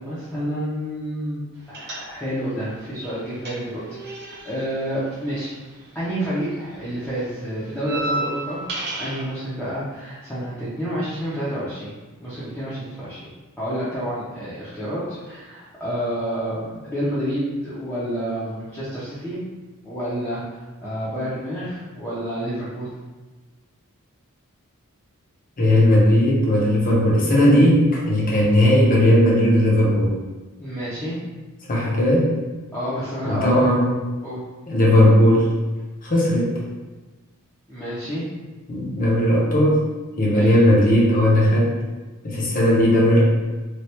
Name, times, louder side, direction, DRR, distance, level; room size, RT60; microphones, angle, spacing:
voice 1, 0.0-1.4 1.7-5.5 5.9-8.6 9.0-11.9 12.2-13.3 13.6-19.4 19.8-22.9 30.6-31.2 32.7-33.7 34.2-34.4 37.7-38.2 40.3-40.6, equal, 5° left, -11 dB, 0.6 m, -29 dB
sound 1, 1.7-2.5 2.8-6.2 6.4-9.3, right 2 dB, 50° right, 0.8 m, -33 dB
voice 2, 25.6-30.2 31.7-32.3 33.2-33.9 34.7-35.5 36.0-36.5 38.7-39.9 40.2-41.8 42.2-43.2, left 1 dB, 40° left, -3 dB, 0.7 m, -17 dB
3.2 x 2.3 x 2.9 m, 1.2 s
head